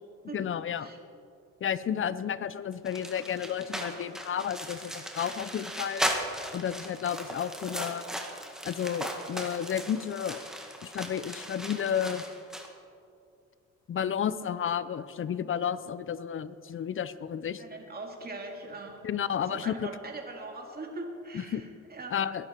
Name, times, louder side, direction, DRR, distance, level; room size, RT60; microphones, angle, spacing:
voice 1, 0.3-0.9 1.6-6.1 6.5-8.1 8.6-10.4 10.8-12.2 13.9-17.6 19.0-19.9 21.3-21.6 22.1-22.5, left 8 dB, 45° left, 16 dB, 0.7 m, -32 dB
sound 1, 2.9-12.7, equal, ahead, 1.9 m, -37 dB
voice 2, 17.6-22.1, right 2 dB, 30° right, 1 dB, 2.8 m, -41 dB
21.0 x 11.0 x 4.6 m, 2.5 s
cardioid pair, 90°, 30 cm